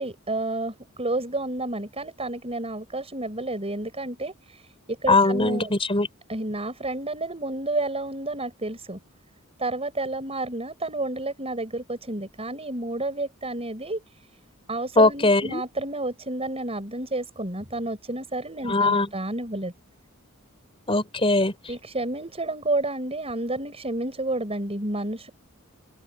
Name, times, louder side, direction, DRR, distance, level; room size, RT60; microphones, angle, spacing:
voice 1, 0.0-4.6 4.9-5.7 6.3-9.0 9.6-14.0 14.7-19.7 21.7-25.3, right 2 dB, 30° right, 6.9 m, -30 dB
voice 2, 5.1-6.1 15.0-15.6 18.6-19.1 20.9-21.5, left 2 dB, 25° left, 5.0 m, -20 dB
open air
head